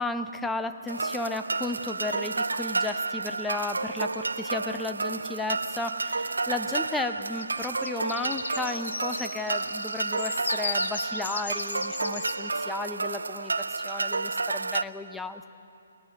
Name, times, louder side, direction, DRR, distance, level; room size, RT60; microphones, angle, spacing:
voice 1, 0.0-15.5, left 3 dB, 5° left, 9 dB, 0.8 m, -34 dB
sound 1, 0.9-14.8, right 3 dB, 70° right, 0.6 m, -31 dB
sound 2, 7.4-12.3, left 4 dB, 60° left, 2.2 m, -35 dB
24.5 x 20.0 x 9.2 m, 2.7 s
figure-of-eight pair, 130°, 0 cm